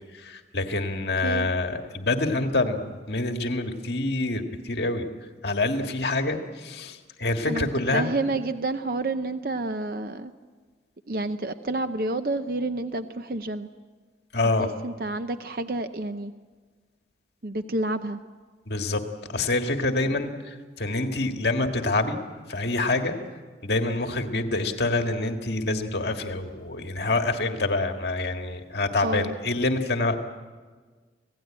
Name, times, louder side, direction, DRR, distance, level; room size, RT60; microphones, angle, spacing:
voice 1, 0.1-5.1 5.4-8.1 14.3-14.7 18.7-19.0 19.3-22.2 22.5-23.2 23.6-30.2, left 2 dB, 70° left, 5 dB, 1.8 m, -26 dB
voice 2, 7.5-10.3 11.1-13.7 14.6-16.3 17.4-18.2 29.0-29.4, right 2 dB, 55° right, 9 dB, 0.7 m, -29 dB
26.5 x 17.0 x 8.9 m, 1.5 s
head